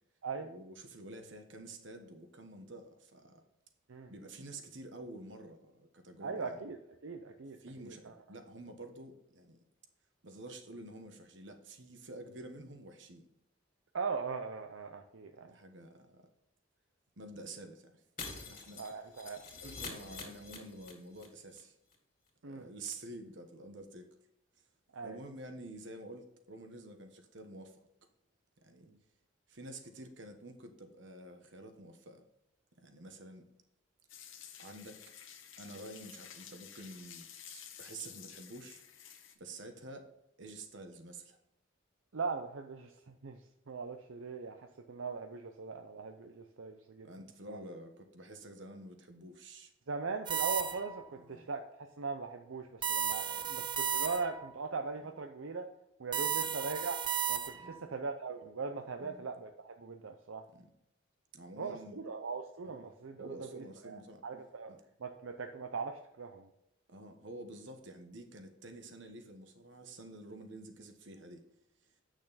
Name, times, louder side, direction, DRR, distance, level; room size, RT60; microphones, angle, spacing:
voice 1, 0.4-3.4 4.1-6.6 7.6-9.6 10.2-13.3 15.4-16.3 17.2-18.8 19.5-21.7 22.4-24.1 25.0-27.8 28.6-28.9 29.5-32.2 32.8-33.5 34.6-35.0 35.6-37.3 37.5-38.8 39.4-40.1 40.4-41.4 47.0-49.7 51.2-51.5 53.4-53.7 55.0-55.1 56.2-56.5 57.6-57.9 59.0-59.3 60.5-60.7 61.3-62.0 62.6-62.9 63.2-64.2 64.7-64.8 66.9-71.4, right 2 dB, 65° right, 6 dB, 1.2 m, -49 dB
voice 2, 6.2-6.8 7.0-8.1 13.9-15.5 18.8-19.4 22.4-22.7 24.9-25.2 28.9-29.0 42.1-43.4 43.7-47.1 47.5-47.6 49.9-51.6 52.0-55.7 56.0-57.0 57.3-60.4 61.6-64.7 65.0-66.5, right 4 dB, 85° right, 5 dB, 0.6 m, -40 dB
Shatter, 18.2-21.3 21.5-21.6 21.9-22.0, left 4 dB, 45° left, 2.5 m, -46 dB
sound 1, 34.1-39.4, left 9 dB, 80° left, 1.1 m, -52 dB
sound 2, 50.3-51.0 52.8-54.5 56.1-57.8, right 8 dB, 25° right, 0.3 m, -34 dB
8.7 x 6.3 x 4.1 m, 0.84 s
head